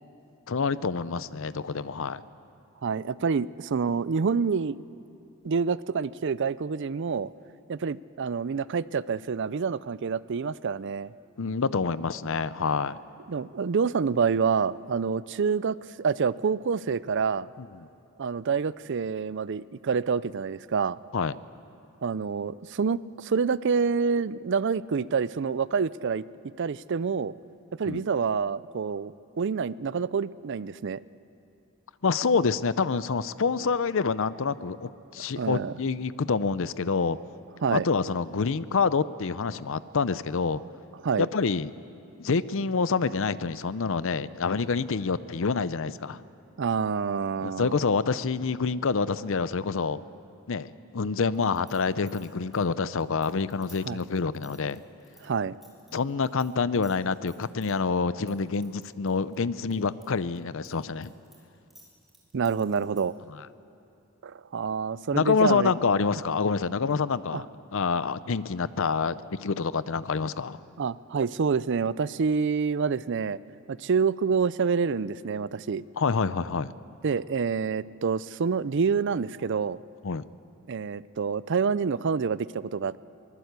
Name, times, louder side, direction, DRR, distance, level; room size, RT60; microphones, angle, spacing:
voice 1, 0.5-2.2 11.4-13.0 17.6-17.7 21.1-21.3 27.9-28.0 32.0-37.2 37.7-40.6 41.2-41.7 42.2-46.2 47.4-50.0 50.5-54.8 55.9-61.1 63.4-63.5 65.1-67.5 67.7-70.6 76.0-76.7 80.0-80.2, left 5 dB, 65° left, 16 dB, 0.6 m, -27 dB
voice 2, 2.8-4.8 5.4-7.3 7.7-11.1 13.3-17.5 18.2-21.0 22.0-26.2 26.6-27.3 27.8-31.0 35.4-35.7 37.6-37.9 41.0-41.3 46.6-47.8 53.9-54.0 55.2-55.6 62.3-63.1 64.2-65.7 67.3-67.4 70.8-73.4 73.7-75.9 77.0-79.8 80.7-83.0, right 5 dB, 55° right, 18 dB, 0.5 m, -27 dB
sound 1, 51.3-56.5 56.8-57.7 58.3-60.1 60.4-63.2, right 1 dB, ahead, 5.3 m, -56 dB
23.5 x 20.0 x 8.1 m, 2.8 s
head